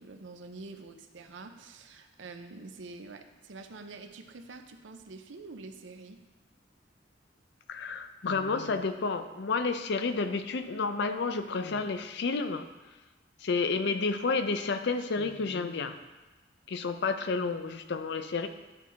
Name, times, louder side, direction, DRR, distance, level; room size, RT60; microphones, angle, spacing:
voice 1, 0.0-6.2, right 3 dB, 85° right, 6 dB, 0.6 m, -46 dB
voice 2, 7.7-12.7 13.4-16.0 16.7-18.5, left 4 dB, 65° left, 9 dB, 0.5 m, -30 dB
11.0 x 4.6 x 3.5 m, 1.2 s
head